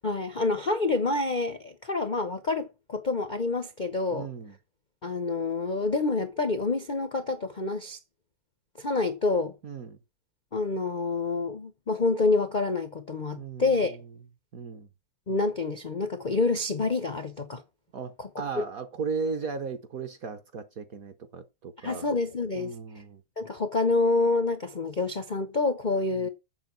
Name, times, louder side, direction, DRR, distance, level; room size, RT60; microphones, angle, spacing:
voice 1, 0.0-4.3 5.0-8.0 8.8-9.5 10.5-14.0 15.3-17.6 18.2-18.3 18.6-18.7 21.8-22.7 23.4-26.3, left 3 dB, 80° left, 0.4 m, -27 dB
voice 2, 4.1-4.6 9.6-10.0 13.3-14.1 14.5-14.9 17.9-22.1 22.5-23.2 26.1-26.3, right 5 dB, 55° right, 1.0 m, -36 dB
8.0 x 7.2 x 6.1 m
omnidirectional pair, 2.4 m